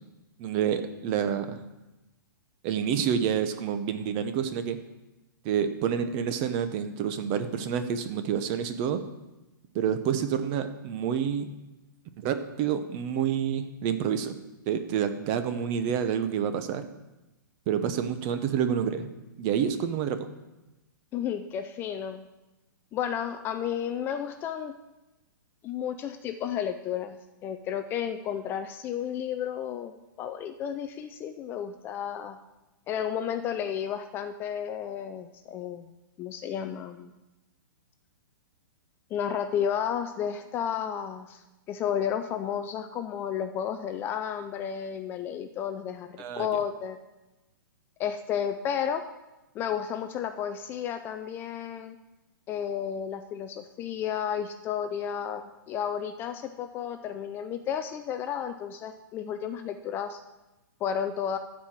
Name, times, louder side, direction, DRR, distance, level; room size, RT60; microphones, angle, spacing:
voice 1, 0.4-1.6 2.6-4.8 5.4-9.0 9.7-11.5 12.2-14.3 14.7-16.8 17.7-19.1 19.4-20.3 46.2-46.6, right 8 dB, 30° right, 9 dB, 0.9 m, -28 dB
voice 2, 21.1-22.3 22.9-24.7 25.6-32.4 32.9-35.9 36.2-37.1 39.1-41.4 41.7-46.1 46.4-47.0 48.0-49.0 49.5-52.0 52.5-55.4 55.7-60.2 60.8-61.4, left 8 dB, 20° left, 8 dB, 0.4 m, -32 dB
13.0 x 4.8 x 7.4 m, 1.0 s
hypercardioid pair, 150°, 11 cm